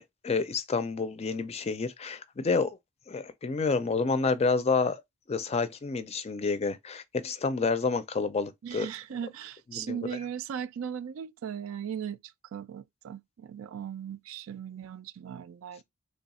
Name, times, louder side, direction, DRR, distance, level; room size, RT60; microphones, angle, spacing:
voice 1, 0.0-2.8 3.1-5.0 5.3-8.9 9.7-10.0, left 4 dB, 30° left, 0.4 m, -29 dB
voice 2, 8.6-15.8, right 8 dB, 80° right, 0.3 m, -38 dB
3.3 x 2.3 x 4.1 m
head